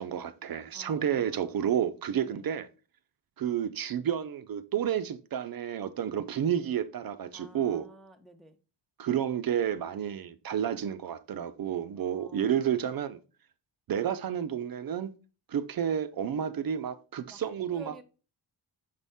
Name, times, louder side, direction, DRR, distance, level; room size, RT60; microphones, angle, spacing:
voice 1, 0.0-2.7 3.4-7.9 9.0-13.2 13.9-15.1 15.5-17.9, right 9 dB, 55° right, 0.5 m, -30 dB
voice 2, 0.7-1.5 2.2-2.6 7.3-8.6 12.0-12.8 17.3-17.4 17.7-18.0, right 2 dB, ahead, 0.4 m, -52 dB
6.6 x 4.1 x 3.5 m
wide cardioid pair, 160°, 43 cm